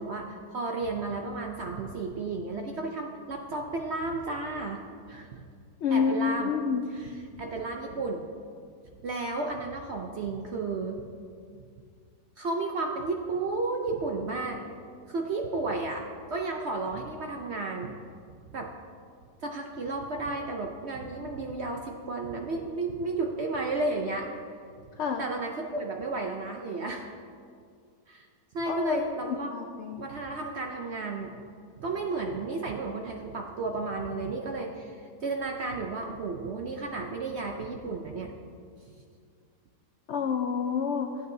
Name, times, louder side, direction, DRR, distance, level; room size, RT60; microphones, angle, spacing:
voice 1, 0.0-4.8 5.1-5.4 5.9-6.5 6.9-8.3 9.0-11.0 12.4-14.6 15.1-17.9 18.5-18.7 19.4-24.3 25.2-27.1 28.1-28.3 28.5-29.5 30.0-31.4 31.8-38.3, right 3 dB, 65° right, 2 dB, 0.7 m, -33 dB
voice 2, 5.8-6.9 25.0-25.2 28.7-30.0 40.1-41.2, left 6 dB, 85° left, 4 dB, 0.6 m, -28 dB
15.0 x 8.2 x 2.7 m, 2.2 s
omnidirectional pair, 1.8 m